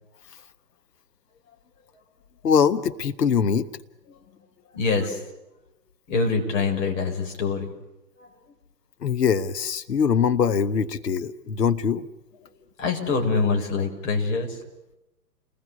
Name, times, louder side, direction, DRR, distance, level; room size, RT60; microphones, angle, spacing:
voice 1, 2.4-3.7 9.0-12.0, left 7 dB, 75° left, 12 dB, 1.4 m, -22 dB
voice 2, 4.7-5.2 6.1-7.7 8.2-8.3 12.4-12.5 12.8-14.6, left 4 dB, 50° left, 3 dB, 6.8 m, -25 dB
30.0 x 20.5 x 8.4 m, 0.95 s
hypercardioid pair, 130°, 49 cm